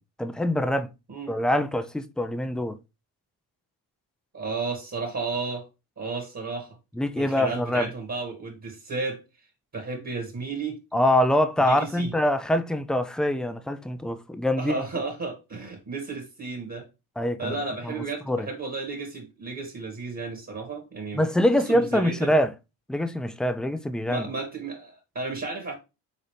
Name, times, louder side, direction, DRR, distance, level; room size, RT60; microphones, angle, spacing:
voice 1, 0.2-0.9 1.3-2.8 7.0-7.9 10.9-14.8 17.2-17.6 17.8-17.9 18.3-18.5 21.1-22.5 22.9-24.3, left 1 dB, ahead, 0.3 m, -24 dB
voice 2, 4.3-5.6 6.0-6.7 7.2-9.2 9.7-10.8 11.6-12.1 14.6-16.9 17.4-21.2 21.5-22.3 24.1-25.8, right 4 dB, 35° right, 1.8 m, -33 dB
4.1 x 4.0 x 3.2 m
cardioid pair, 70°, 46 cm